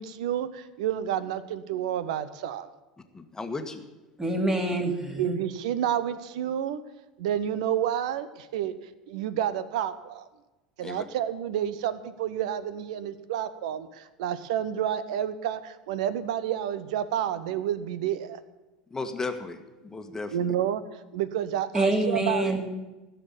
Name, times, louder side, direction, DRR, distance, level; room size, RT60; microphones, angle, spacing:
voice 1, 0.0-2.7 5.2-6.8 7.2-8.8 9.1-10.3 10.8-18.4 20.3-22.6, right 10 dB, 60° right, 15 dB, 0.9 m, -30 dB
voice 2, 3.1-3.8 10.8-11.0 18.9-20.5, left 3 dB, 15° left, 7 dB, 1.6 m, -35 dB
voice 3, 4.2-5.4 21.7-22.6, right 1 dB, 15° right, 3 dB, 2.6 m, -26 dB
15.0 x 6.9 x 9.9 m, 1.1 s
figure-of-eight pair, 80°, 4 cm